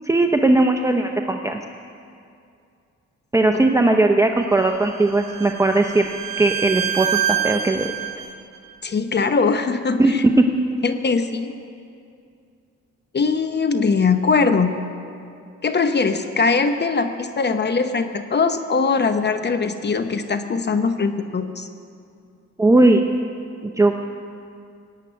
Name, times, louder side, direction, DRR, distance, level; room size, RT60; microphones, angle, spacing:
voice 1, 0.1-1.6 3.3-6.0 6.4-7.9 10.0-10.5 22.6-23.0 23.6-24.1, right 2 dB, 10° right, 4 dB, 0.8 m, -18 dB
Bowed string instrument, 4.6-8.4, right 10 dB, 65° right, 1.7 m, -27 dB
voice 2, 8.8-10.2 10.8-11.5 13.1-14.7 15.6-21.7, left 4 dB, 35° left, 9 dB, 0.9 m, -21 dB
16.5 x 8.4 x 9.4 m, 2.4 s
cardioid pair, 90°, 30 cm